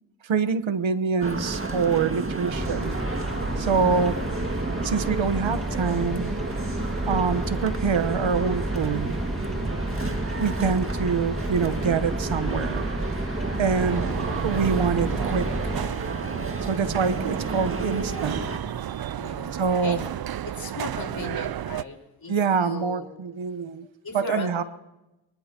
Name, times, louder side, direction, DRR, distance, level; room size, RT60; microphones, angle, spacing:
voice 1, 0.2-3.0 3.6-4.2 4.8-6.3 7.1-9.2 10.4-12.9 13.6-15.7 16.7-18.5 19.6-20.0 22.3-23.9 24.1-24.6, right 5 dB, 80° right, 12 dB, 1.1 m, -25 dB
sound 1, 1.2-18.6, right 2 dB, 25° right, 1.9 m, -32 dB
sound 2, 2.5-15.8, right 1 dB, ahead, 2.0 m, -31 dB
voice 2, 3.8-4.1 9.8-10.2 13.5-13.7 19.1-20.1 20.4-23.1 24.0-24.5, left 3 dB, 50° left, 2 dB, 4.8 m, -37 dB
sound 3, 13.7-21.8, right 11 dB, 50° right, 0.5 m, -32 dB
24.0 x 20.0 x 2.9 m, 0.96 s
cardioid pair, 60°, 46 cm